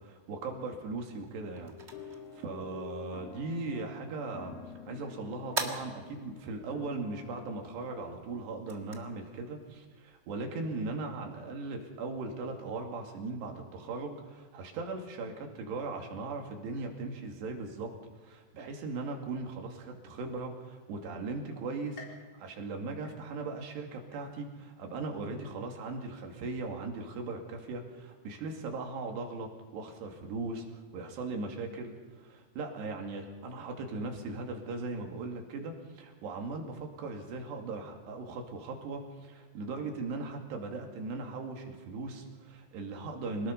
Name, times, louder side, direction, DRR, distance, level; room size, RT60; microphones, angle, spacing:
voice 1, 0.0-4.6 4.9-18.0 18.2-43.5, right 3 dB, 85° right, 2 dB, 4.6 m, -39 dB
sound 1, 1.2-10.9, right 3 dB, 60° right, 0.6 m, -45 dB
sound 2, 1.7-8.2, left 6 dB, 75° left, 3.3 m, -48 dB
sound 3, 22.0-23.7 24.1-24.7 25.2-25.3 26.3-26.4, left 3 dB, 30° left, 4.7 m, -54 dB
27.0 x 19.0 x 5.4 m, 1.4 s
omnidirectional pair, 4.8 m